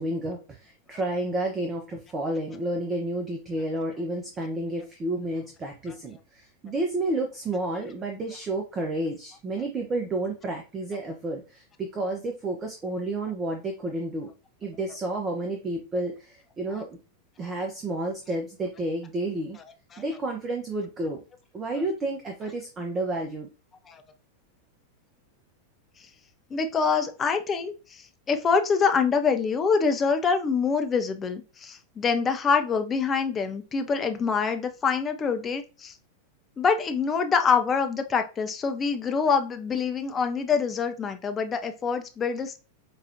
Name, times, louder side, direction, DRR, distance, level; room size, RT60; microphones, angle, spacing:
voice 1, 0.0-14.3 14.6-16.9 17.4-19.6 20.0-21.2 21.5-23.5, right 2 dB, 25° right, 3 dB, 0.6 m, -31 dB
voice 2, 26.5-36.0 36.6-42.6, left 5 dB, 20° left, 6 dB, 0.5 m, -25 dB
4.9 x 2.3 x 2.7 m, 0.32 s
figure-of-eight pair, 90°, 0 cm